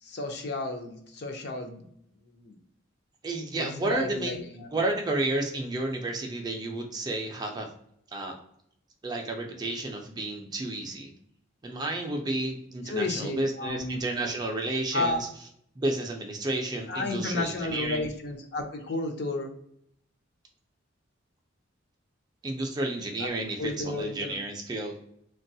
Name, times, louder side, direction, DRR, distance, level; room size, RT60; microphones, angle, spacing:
voice 1, 0.0-1.9 2.3-2.6 3.6-4.7 12.8-14.0 14.9-15.2 16.9-19.5 23.2-23.3 23.6-24.4, left 2 dB, 55° left, 4 dB, 0.5 m, -32 dB
voice 2, 3.2-4.4 4.7-7.7 8.1-8.4 9.0-11.1 11.6-15.3 15.8-18.1 22.4-24.9, right 2 dB, 20° right, 2 dB, 0.3 m, -31 dB
3.2 x 2.2 x 2.6 m, 0.71 s
head